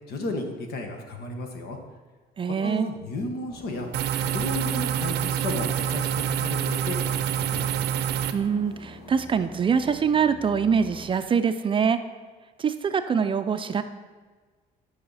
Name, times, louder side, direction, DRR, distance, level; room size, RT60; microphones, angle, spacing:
voice 1, 0.1-1.8 2.6-3.9 4.2-7.7, left 2 dB, 70° left, 4 dB, 1.5 m, -33 dB
voice 2, 2.4-2.9 8.3-12.0 12.6-13.8, right 6 dB, 30° right, 9 dB, 0.5 m, -24 dB
sound 1, 3.5-11.2, equal, 40° left, 2.6 m, -46 dB
sound 2, 3.9-8.3, right 10 dB, 80° right, 0.6 m, -26 dB
11.5 x 5.6 x 4.1 m, 1.4 s
cardioid pair, 110°, 17 cm